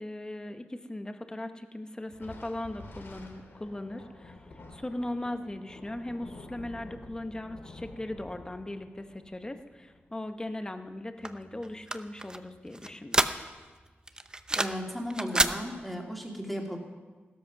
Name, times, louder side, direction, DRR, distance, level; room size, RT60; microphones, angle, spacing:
voice 1, 0.0-13.3, left 1 dB, 20° left, 7 dB, 1.0 m, -38 dB
Thunder, 2.1-10.9, left 2 dB, 65° left, 2.1 m, -49 dB
sound 1, 11.2-13.7 14.1-14.9 15.1-15.6, right 2 dB, 20° right, 0.7 m, -29 dB
voice 2, 14.5-16.8, equal, ahead, 0 dB, 2.6 m, -35 dB
16.0 x 13.0 x 6.0 m, 1.3 s
wide cardioid pair, 105°, 4 cm